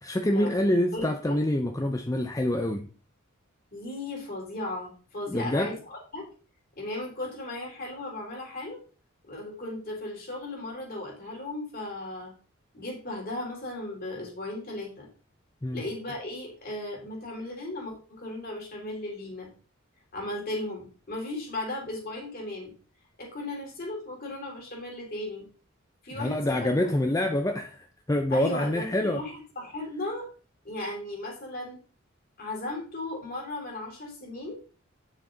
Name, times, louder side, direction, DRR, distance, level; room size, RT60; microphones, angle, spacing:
voice 1, 0.0-2.9 5.3-5.8 15.6-15.8 26.1-29.2, left 1 dB, 15° left, 0.6 m, -26 dB
voice 2, 0.9-1.4 3.7-6.2 6.8-8.8 9.2-12.3 12.7-15.1 15.7-19.5 20.1-22.7 23.2-25.4 26.0-26.9 28.3-30.3 30.6-31.8 32.4-34.6, left 2 dB, 45° left, 3.7 m, -36 dB
9.5 x 6.6 x 3.9 m
head